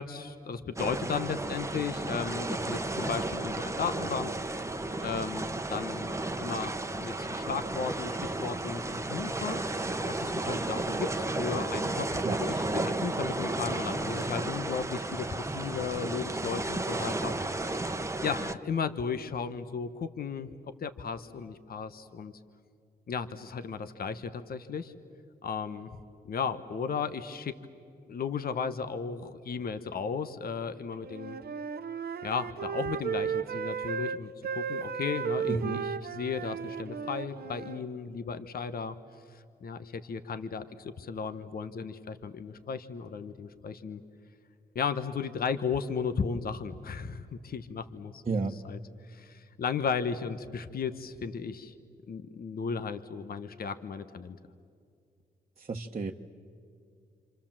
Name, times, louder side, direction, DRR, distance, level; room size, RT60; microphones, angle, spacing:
voice 1, 0.0-4.3 5.0-9.6 10.1-20.5 20.8-22.3 23.1-24.9 25.4-25.9 26.2-27.6 28.1-31.4 32.2-39.0 39.3-44.0 44.7-48.2 48.6-48.8 49.1-51.7 52.1-54.4, left 6 dB, 60° left, 10 dB, 1.2 m, -35 dB
sound 1, 0.8-18.5, right 2 dB, 15° right, 1.2 m, -33 dB
Wind instrument woodwind instrument, 31.0-37.8, right 7 dB, 65° right, 0.9 m, -35 dB
voice 2, 35.5-35.8 48.2-48.6 55.6-56.1, right 4 dB, 40° right, 0 dB, 1.2 m, -32 dB
27.0 x 27.0 x 7.5 m, 2.3 s
cardioid pair, 60°, 17 cm